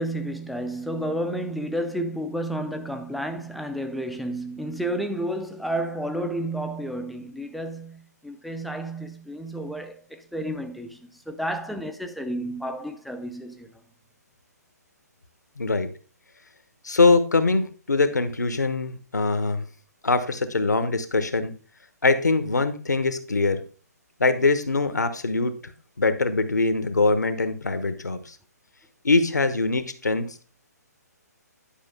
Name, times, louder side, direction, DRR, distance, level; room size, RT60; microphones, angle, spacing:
voice 1, 0.0-11.0 11.3-13.7, right 1 dB, ahead, 0.5 m, -31 dB
voice 2, 15.6-15.9 16.8-19.6 20.0-21.5 22.0-23.6 24.2-25.7 26.0-28.4 29.0-30.4, left 3 dB, 75° left, 1.0 m, -23 dB
10.5 x 5.1 x 3.6 m
figure-of-eight pair, 130°, 9 cm